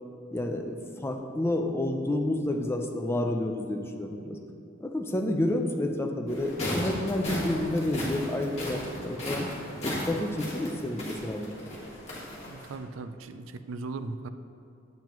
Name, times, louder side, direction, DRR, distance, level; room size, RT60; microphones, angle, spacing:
voice 1, 0.3-4.4 4.8-9.5 9.8-11.5, left 1 dB, 15° left, 3 dB, 0.5 m, -30 dB
sound 1, 6.3-12.8, left 1 dB, 35° left, 1.6 m, -36 dB
voice 2, 12.5-14.3, right 3 dB, 85° right, 10 dB, 0.4 m, -38 dB
9.0 x 7.4 x 3.0 m, 2.6 s
head